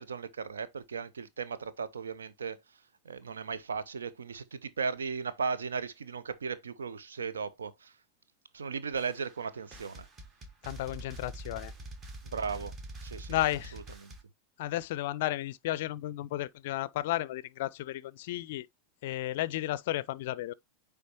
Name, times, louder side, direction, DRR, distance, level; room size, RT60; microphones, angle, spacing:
voice 1, 0.0-2.6 3.0-7.9 8.5-10.1 12.2-12.7 13.0-13.4 13.7-14.1, right 5 dB, 70° right, 0.7 m, -36 dB
sound 1, 9.0-14.2, right 2 dB, 25° right, 1.5 m, -45 dB
voice 2, 10.6-11.7 13.3-13.8 14.6-18.7 19.0-20.5, left 15 dB, 50° left, 0.4 m, -33 dB
9.4 x 3.5 x 2.9 m
figure-of-eight pair, 90°, 0 cm